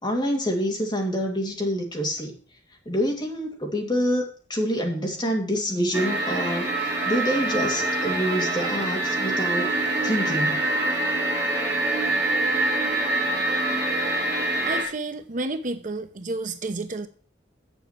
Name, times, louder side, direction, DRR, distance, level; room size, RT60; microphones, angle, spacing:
voice 1, 0.0-2.4 2.9-9.7 10.0-10.7, equal, 25° left, 1 dB, 2.5 m, -27 dB
sound 1, 5.9-14.8, right 2 dB, 15° right, 5.4 m, -25 dB
voice 2, 14.7-17.1, right 2 dB, 45° right, 8 dB, 0.9 m, -30 dB
7.9 x 7.3 x 7.4 m, 0.42 s
head